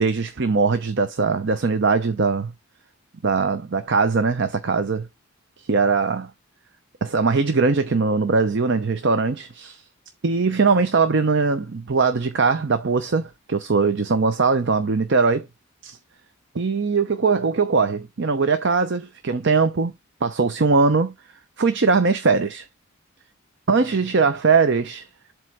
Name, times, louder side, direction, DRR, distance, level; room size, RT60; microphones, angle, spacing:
voice 1, 0.0-2.5 3.2-5.1 5.6-6.3 7.0-9.8 10.2-15.5 15.8-16.0 16.5-19.9 20.2-21.1 21.6-22.7 23.7-25.1, right 4 dB, 55° right, 0.7 m, -21 dB
7.7 x 3.1 x 4.9 m
head